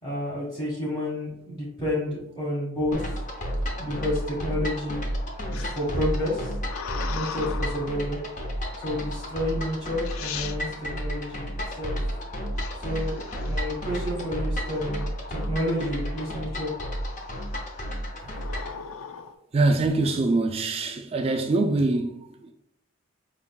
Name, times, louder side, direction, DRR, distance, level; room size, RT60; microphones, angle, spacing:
voice 1, 0.0-3.0 3.8-5.0 5.5-6.6 7.1-8.2 8.8-12.0 12.7-16.7, left 1 dB, 20° left, 1.2 m, -30 dB
sound 1, 2.9-18.8, equal, 40° left, 0.6 m, -32 dB
sound 2, 5.5-8.0 8.8-9.2 9.8-9.9 10.0-10.6 12.6-14.2 14.7-15.1 15.4-16.6 17.1-17.5 18.3-19.3, left 7 dB, 90° left, 0.4 m, -39 dB
voice 2, 19.5-22.5, right 2 dB, 30° right, 0.3 m, -24 dB
4.9 x 3.7 x 2.2 m
head